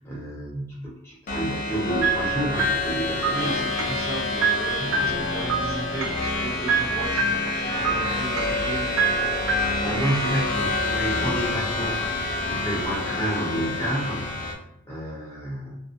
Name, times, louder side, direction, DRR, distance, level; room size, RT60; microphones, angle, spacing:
voice 1, 0.0-4.0 4.8-5.1 9.5-14.5 14.8-15.7, right 1 dB, 10° left, -6 dB, 0.7 m, -30 dB
sound 1, 1.3-14.5, left 2 dB, 40° left, 0.4 m, -28 dB
sound 2, 2.0-9.7, right 4 dB, 75° right, 0.4 m, -27 dB
voice 2, 3.3-8.9, right 1 dB, 50° right, -6 dB, 0.8 m, -35 dB
2.3 x 2.3 x 2.5 m, 0.81 s
head